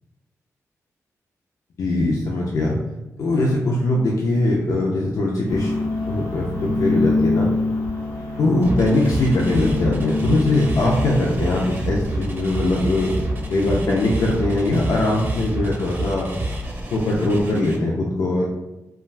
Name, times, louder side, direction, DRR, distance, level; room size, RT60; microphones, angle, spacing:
voice 1, 1.8-2.8 3.2-7.5 8.4-13.1 13.5-16.3 16.9-18.4, left 2 dB, 70° left, -3 dB, 0.4 m, -21 dB
sound 1, 5.5-15.7, left 2 dB, 90° left, 0.7 m, -27 dB
sound 2, 8.6-17.8, right 1 dB, 35° right, 0.5 m, -28 dB
2.3 x 2.2 x 3.2 m, 0.96 s
wide cardioid pair, 105°, 6 cm